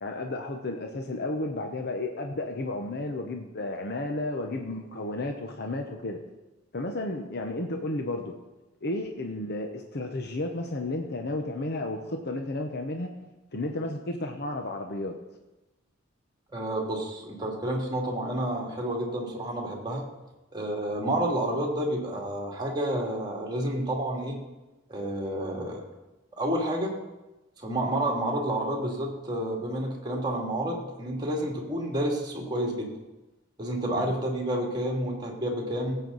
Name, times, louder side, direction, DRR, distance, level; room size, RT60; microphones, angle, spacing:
voice 1, 0.0-6.2 6.7-8.4 8.8-13.1 13.5-15.2 34.0-34.1, left 2 dB, 55° left, 4 dB, 0.9 m, -32 dB
voice 2, 16.5-20.0 20.5-24.4 24.9-25.8 26.4-27.0 27.6-32.9 33.6-36.0, right 1 dB, 20° right, -1 dB, 2.4 m, -30 dB
17.0 x 8.0 x 4.0 m, 1.0 s
head